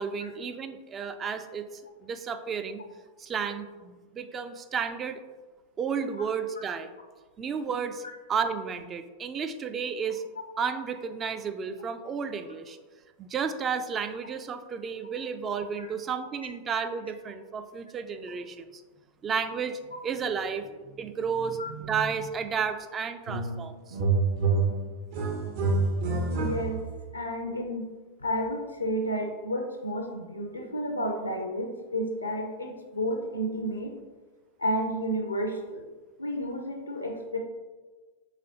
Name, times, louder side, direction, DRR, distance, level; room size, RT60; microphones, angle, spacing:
voice 1, 0.0-2.8 3.2-5.2 5.8-6.9 7.4-8.0 8.3-10.2 10.6-12.8 13.2-18.8 19.2-24.0, right 6 dB, 25° right, 9 dB, 0.3 m, -32 dB
sound 1, 23.3-23.6 23.9-27.0, right 3 dB, 50° right, 0.7 m, -27 dB
voice 2, 26.3-26.8 27.1-27.8 28.2-33.9 34.6-35.8 36.2-37.4, equal, 85° left, 3 dB, 0.5 m, -31 dB
4.9 x 3.5 x 2.8 m, 1.3 s
figure-of-eight pair, 90°, 0 cm